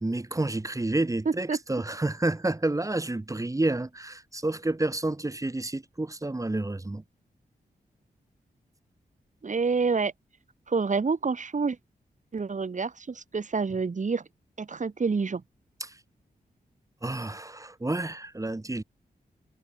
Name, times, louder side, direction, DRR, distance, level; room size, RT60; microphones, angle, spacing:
voice 1, 0.0-7.0 15.8-16.0 17.0-18.8, right 2 dB, 20° right, 1.2 m, -29 dB
voice 2, 1.2-1.6 9.4-10.1 10.7-11.8 12.3-14.2 14.6-15.4, right 4 dB, 45° right, 1.5 m, -27 dB
cardioid pair, 65°, 17 cm